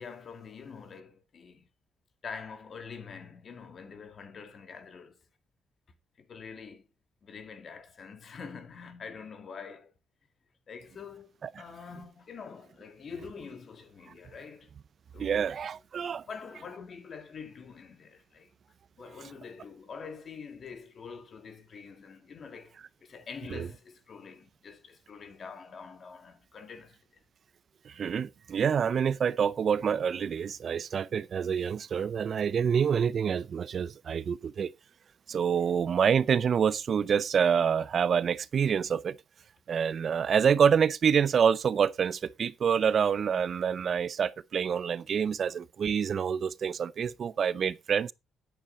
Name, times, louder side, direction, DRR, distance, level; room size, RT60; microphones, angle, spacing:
voice 1, 0.0-1.7 2.2-5.2 6.2-6.9 7.2-9.9 10.7-14.7 15.1-15.5 16.2-18.5 19.0-27.0, left 5 dB, 50° left, 2.6 m, -45 dB
voice 2, 15.2-16.2 23.5-23.7 27.9-34.7 35.3-39.2 39.7-48.1, right 7 dB, 55° right, 0.5 m, -27 dB
10.5 x 8.7 x 4.1 m
cardioid pair, 90°, 0 cm